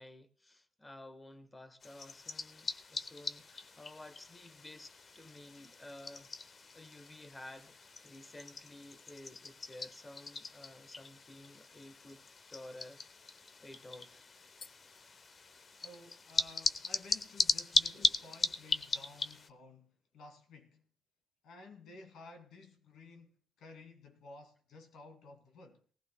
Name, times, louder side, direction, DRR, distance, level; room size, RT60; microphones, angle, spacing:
voice 1, 0.0-6.3 6.7-12.2 12.5-13.0 13.3-14.3, left 1 dB, 15° left, 1.0 m, -53 dB
sound 1, 1.8-19.5, left 4 dB, 40° left, 0.8 m, -38 dB
voice 2, 15.8-20.8 21.4-25.8, left 3 dB, 75° left, 2.4 m, -54 dB
19.5 x 15.0 x 2.2 m
cardioid pair, 90°, 0 cm